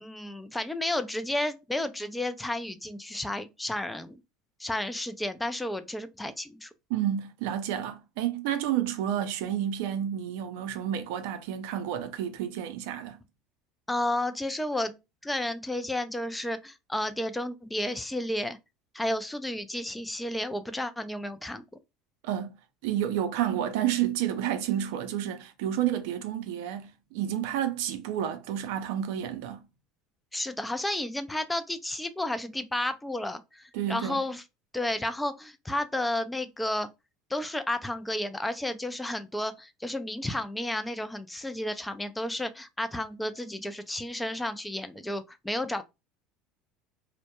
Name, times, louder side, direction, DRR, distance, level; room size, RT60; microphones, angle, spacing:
voice 1, 0.0-4.2 4.6-6.7 13.9-15.0 15.2-18.6 18.9-21.6 30.3-34.4 34.7-36.9 37.3-45.8, left 1 dB, 10° left, 0.3 m, -32 dB
voice 2, 6.9-13.2 22.2-22.6 22.8-29.6 33.7-34.2, right 10 dB, 75° right, 0.4 m, -30 dB
2.1 x 2.1 x 2.8 m
hypercardioid pair, 85°, 0 cm